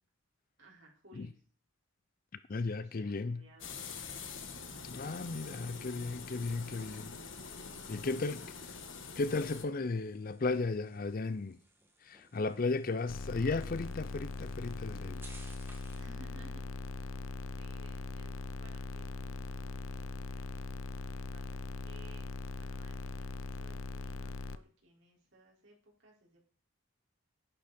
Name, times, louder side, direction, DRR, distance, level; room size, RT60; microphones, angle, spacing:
voice 1, 0.6-1.4 2.8-4.2 7.6-8.7 16.0-16.6 16.9-17.3 17.6-20.5 21.0-22.3 22.6-26.4, right 1 dB, 60° right, 4.9 m, -60 dB
voice 2, 2.5-3.4 4.8-7.2 7.9-8.4 9.2-11.6 12.0-15.2, left 3 dB, 45° left, 0.5 m, -35 dB
sound 1, 3.6-9.6, left 5 dB, 65° left, 1.7 m, -45 dB
sound 2, 5.4-16.2, right 2 dB, 10° right, 2.0 m, -62 dB
sound 3, 13.1-24.6, left 3 dB, 85° left, 0.7 m, -41 dB
11.0 x 10.5 x 4.3 m
head